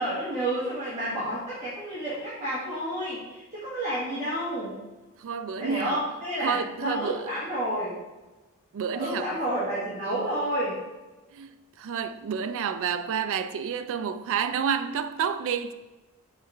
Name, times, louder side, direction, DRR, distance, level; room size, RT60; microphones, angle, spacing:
voice 1, 0.0-4.7 5.6-7.9 8.9-10.8, right 1 dB, 30° right, 1.6 m, -30 dB
voice 2, 5.2-6.0 6.4-7.3 8.7-9.3 11.3-11.5 11.8-15.7, right 7 dB, 60° right, 0.3 m, -29 dB
6.7 x 4.2 x 3.3 m
head